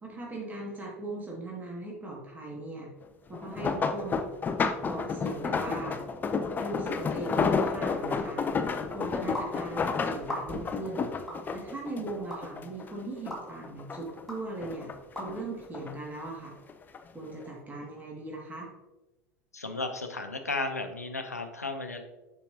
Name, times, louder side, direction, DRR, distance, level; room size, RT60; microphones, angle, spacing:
voice 1, 0.0-2.9 3.3-4.3 4.9-6.0 6.6-8.4 8.9-11.0 11.5-14.9 15.2-16.6 17.1-18.7, right 2 dB, 20° right, -2 dB, 2.1 m, -39 dB
sound 1, 3.3-12.9 13.3-14.2 14.6-15.9 16.7-17.0 17.4-17.5, left 5 dB, 20° left, 0.5 m, -31 dB
sound 2, 9.3-9.5 10.2-10.7 11.3-11.4 12.3-12.4 13.3-13.4 14.3-14.4 15.2-15.3, equal, 5° left, 2.1 m, -36 dB
voice 2, 19.5-22.0, left 3 dB, 90° left, 6 dB, 0.6 m, -34 dB
7.1 x 5.7 x 2.8 m, 1.0 s
figure-of-eight pair, 80°, 8 cm